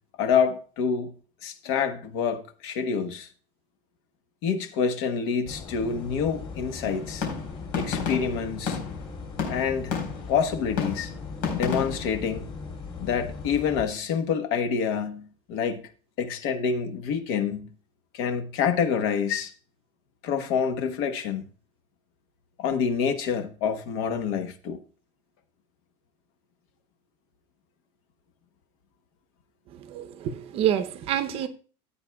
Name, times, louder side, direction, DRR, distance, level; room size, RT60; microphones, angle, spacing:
voice 1, 0.2-1.1 1.4-3.3 4.4-7.3 7.7-8.8 9.5-9.9 10.3-11.1 11.5-12.5 13.0-15.8 16.2-17.7 18.1-19.5 20.2-21.4 22.6-24.8, left 6 dB, 60° left, 1.2 m, -27 dB
sound 1, 5.4-13.9, left 4 dB, 30° left, 3.0 m, -39 dB
sound 2, 6.8-10.4 10.8-12.2, left 6 dB, 90° left, 4.3 m, -32 dB
voice 2, 29.7-31.5, right 10 dB, 35° right, 0.7 m, -27 dB
15.5 x 8.7 x 2.3 m
cardioid pair, 180°, 16 cm